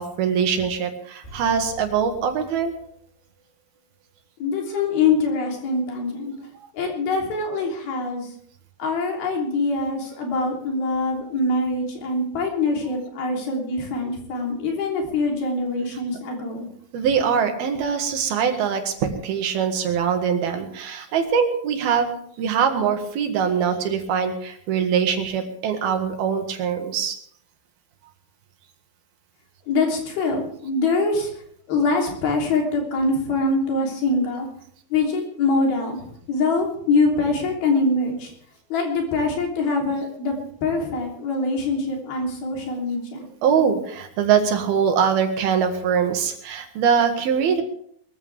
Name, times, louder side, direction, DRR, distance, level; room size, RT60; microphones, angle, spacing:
voice 1, 0.0-2.8 16.9-27.2 43.4-47.6, right 7 dB, 85° right, 5 dB, 3.7 m, -23 dB
sound 1, 1.2-3.4 3.7-3.8, right 1 dB, 15° left, 4.1 m, -45 dB
voice 2, 4.4-6.3 6.7-8.3 8.8-16.7 29.7-31.3 31.7-34.5 34.9-38.3 38.7-40.4 40.6-43.3, left 3 dB, 80° left, 0 dB, 5.3 m, -24 dB
22.0 x 14.5 x 3.5 m, 0.65 s
omnidirectional pair, 4.2 m